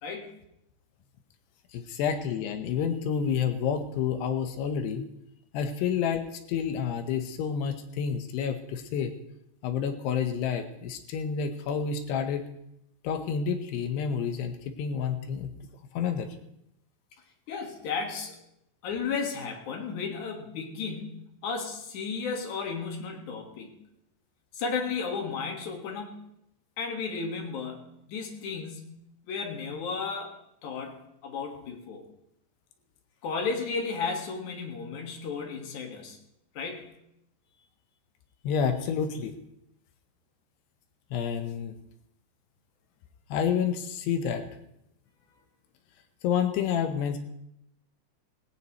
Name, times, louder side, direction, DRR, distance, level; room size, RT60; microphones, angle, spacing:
voice 1, 1.7-5.1 5.5-9.1 9.6-12.4 13.0-15.5 15.9-16.3 38.4-39.3 41.1-41.7 43.3-44.4 46.2-47.2, left 7 dB, 80° left, 7 dB, 3.0 m, -29 dB
voice 2, 17.5-18.4 18.8-23.7 24.5-26.2 26.8-30.4 30.6-32.0 33.2-36.2 36.5-36.9, left 5 dB, 55° left, 2 dB, 2.6 m, -34 dB
18.0 x 17.5 x 3.1 m, 0.79 s
omnidirectional pair, 4.9 m